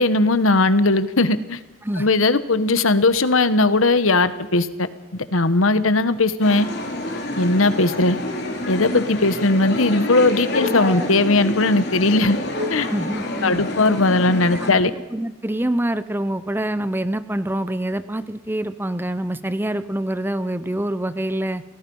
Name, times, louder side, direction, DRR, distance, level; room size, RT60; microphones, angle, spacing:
voice 1, 0.0-1.6 2.0-6.7 7.4-8.2 8.7-12.4 12.7-12.9 13.4-14.9, left 2 dB, 85° left, 13 dB, 1.3 m, -18 dB
sound 1, 6.4-14.7, left 1 dB, 55° left, 3.3 m, -28 dB
voice 2, 12.9-13.6 14.5-21.6, right 1 dB, 10° right, 13 dB, 0.7 m, -26 dB
28.5 x 19.0 x 5.5 m, 1.1 s
head